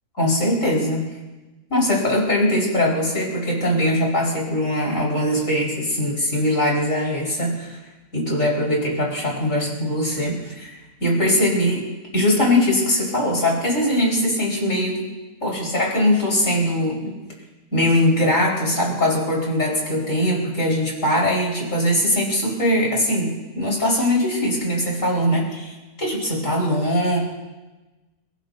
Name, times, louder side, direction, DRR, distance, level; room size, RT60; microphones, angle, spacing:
voice 1, 0.2-1.0 1.7-7.8 8.1-10.7 11.0-11.8 12.1-15.1 15.4-17.1 17.7-27.2, left 1 dB, 55° left, -4 dB, 5.3 m, -21 dB
30.0 x 15.5 x 2.7 m, 1.1 s
omnidirectional pair, 1.6 m